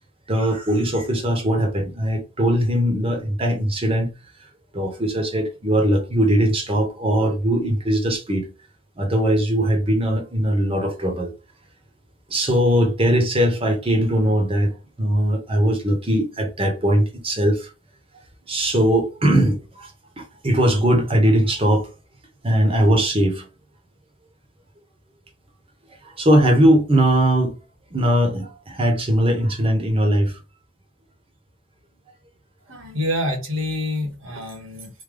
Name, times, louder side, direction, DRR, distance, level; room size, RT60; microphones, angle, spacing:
voice 1, 0.3-4.1 4.7-8.4 9.0-11.3 12.3-14.7 15.0-17.7 18.5-19.9 20.2-21.9 22.4-23.5 26.2-27.5 27.9-30.3, right 1 dB, 25° right, 0.9 m, -20 dB
voice 2, 32.7-34.9, left 1 dB, 65° right, 1.2 m, -27 dB
3.4 x 2.2 x 3.7 m
head